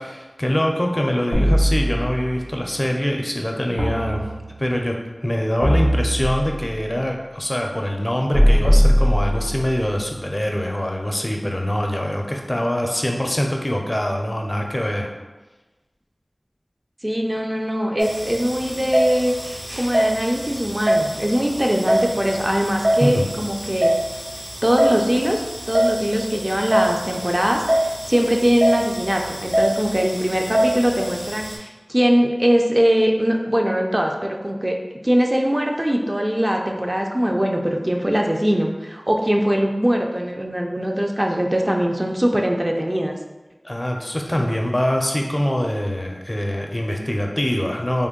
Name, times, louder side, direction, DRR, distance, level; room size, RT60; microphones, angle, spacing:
voice 1, 0.0-15.1 23.0-23.3 43.6-48.1, equal, 30° left, 1 dB, 0.4 m, -24 dB
sound 1, 1.3-2.4 3.8-4.7 5.6-6.7 8.3-9.8, equal, 90° right, 0.8 m, -19 dB
voice 2, 17.0-19.3 19.7-23.9 24.6-34.8 35.0-43.2, equal, 30° right, 1 dB, 0.3 m, -21 dB
sound 2, 18.0-31.6, right 1 dB, 60° right, 0.9 m, -24 dB
3.5 x 2.1 x 3.6 m, 1.1 s
wide cardioid pair, 50°, 0 cm